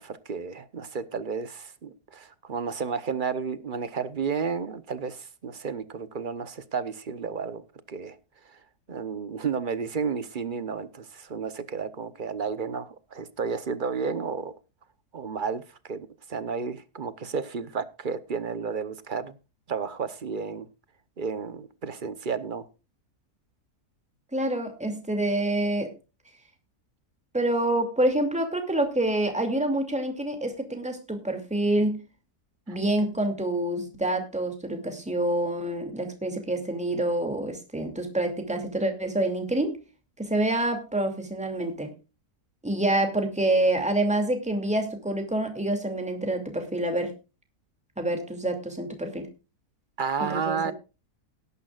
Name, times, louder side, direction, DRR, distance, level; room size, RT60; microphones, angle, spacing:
voice 1, 0.0-8.2 8.9-14.5 15.1-15.6 15.9-19.4 19.7-20.7 21.2-22.6 32.7-32.8 50.0-50.7, right 5 dB, 40° right, 0.9 m, -32 dB
voice 2, 24.3-25.9 27.3-32.0 32.7-39.8 40.2-41.9 42.6-47.1 48.0-49.3 50.2-50.7, right 1 dB, 5° right, 2.5 m, -27 dB
18.5 x 11.0 x 2.4 m
omnidirectional pair, 1.7 m